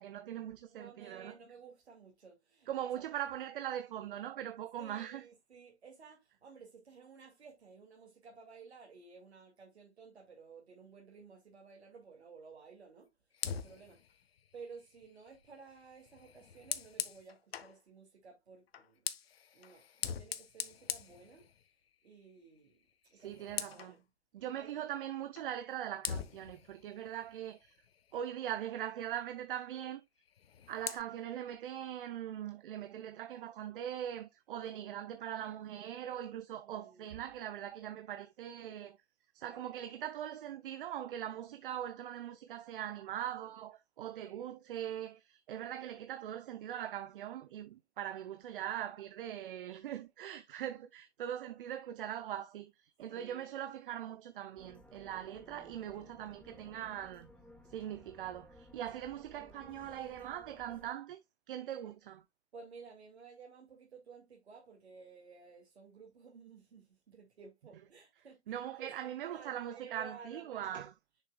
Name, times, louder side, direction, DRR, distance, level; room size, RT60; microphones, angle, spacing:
voice 1, 0.0-1.3 2.7-5.2 23.2-23.9 24.3-27.8 28.1-30.0 30.7-39.0 39.3-57.3 57.7-61.2 61.5-62.2 68.5-70.9, right 11 dB, 50° right, 0.7 m, -41 dB
voice 2, 0.6-3.1 4.8-13.1 13.5-14.0 14.5-19.1 19.5-21.5 22.0-22.8 23.1-24.0 24.5-24.7 36.5-37.2 39.5-39.6 53.1-53.5 55.0-55.2 62.5-70.9, right 5 dB, 70° right, 2.3 m, -55 dB
Fire, 13.3-17.8 18.7-21.9 22.3-22.6 22.9-24.0 25.4-25.5 26.0-28.3 30.2-31.0, left 8 dB, 60° left, 0.8 m, -43 dB
sound 1, 54.6-60.9, left 1 dB, 5° left, 1.3 m, -58 dB
7.7 x 6.6 x 2.3 m
figure-of-eight pair, 105°, 34 cm